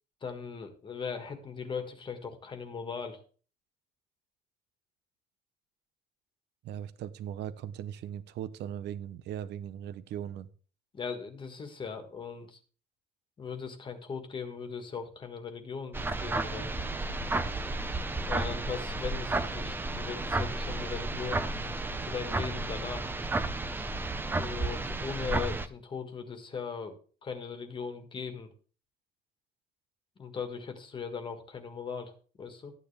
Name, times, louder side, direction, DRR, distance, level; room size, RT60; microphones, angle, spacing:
voice 1, 0.2-3.2 10.9-12.6 13.4-16.8 18.3-21.5 22.0-23.1 24.4-26.9 27.2-28.5 30.2-32.1 32.4-32.7, left 6 dB, 25° left, 1.7 m, -39 dB
voice 2, 6.6-10.5, right 10 dB, 65° right, 0.9 m, -39 dB
sound 1, 15.9-25.7, right 2 dB, 10° right, 0.6 m, -32 dB
13.5 x 9.6 x 3.4 m
cardioid pair, 155°, 18 cm